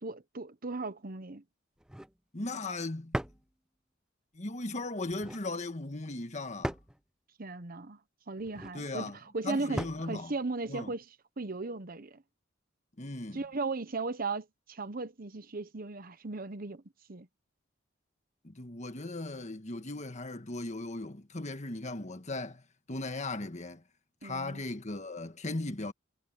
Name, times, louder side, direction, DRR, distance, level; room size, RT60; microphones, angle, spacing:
voice 1, 0.0-1.4 7.4-8.0 8.3-11.0 11.4-12.2 13.3-16.8 17.1-17.3 24.2-24.6, right 3 dB, 45° right, 1.0 m, -37 dB
sound 1, 1.8-2.2 3.1-3.5 5.0-5.4 6.6-7.0 8.4-8.8 9.8-10.1, equal, 5° right, 0.3 m, -37 dB
voice 2, 2.3-3.2 4.3-6.7 8.7-9.2 9.4-10.3 10.7-10.9 13.0-13.4 18.4-22.6 22.9-23.8 24.2-25.9, left 2 dB, 35° left, 1.6 m, -37 dB
head